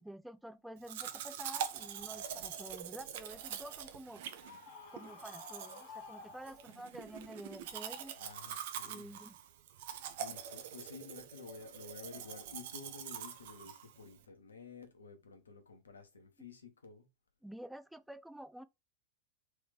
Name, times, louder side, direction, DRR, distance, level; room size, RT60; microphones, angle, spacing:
voice 1, 0.0-4.3 4.9-8.2 8.8-9.4 17.4-18.6, right 1 dB, ahead, 0.4 m, -49 dB
Domestic sounds home sounds, 0.8-14.2, right 9 dB, 55° right, 0.6 m, -44 dB
Screaming, 4.3-7.0, left 4 dB, 50° left, 1.2 m, -52 dB
voice 2, 8.2-9.2 9.8-9.9 10.2-17.1, left 5 dB, 70° left, 1.1 m, -52 dB
3.4 x 3.4 x 3.5 m
figure-of-eight pair, 90°, 0 cm